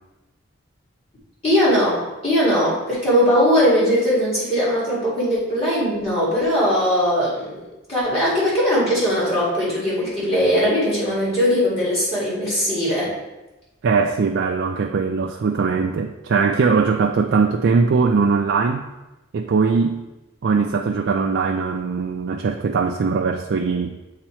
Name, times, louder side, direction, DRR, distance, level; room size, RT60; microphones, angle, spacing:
voice 1, 1.4-7.6 7.9-13.1, equal, 30° left, -8 dB, 2.0 m, -20 dB
voice 2, 13.8-18.9 19.3-20.0 20.4-24.0, right 5 dB, 60° right, 3 dB, 0.3 m, -20 dB
7.9 x 2.9 x 4.3 m, 1.0 s
head